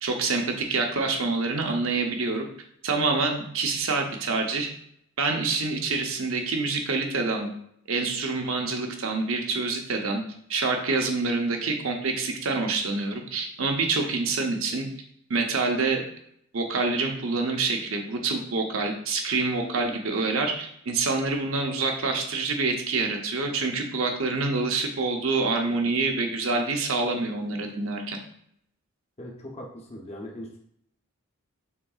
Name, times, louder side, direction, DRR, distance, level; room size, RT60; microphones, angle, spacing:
voice 1, 0.0-2.4 2.8-4.7 5.2-7.5 7.9-10.2 10.5-14.9 15.3-16.0 16.5-28.2, right 3 dB, 65° right, 3 dB, 0.8 m, -26 dB
voice 2, 29.2-30.6, left 1 dB, 30° left, -1 dB, 0.7 m, -40 dB
5.7 x 3.6 x 2.4 m, 0.70 s
head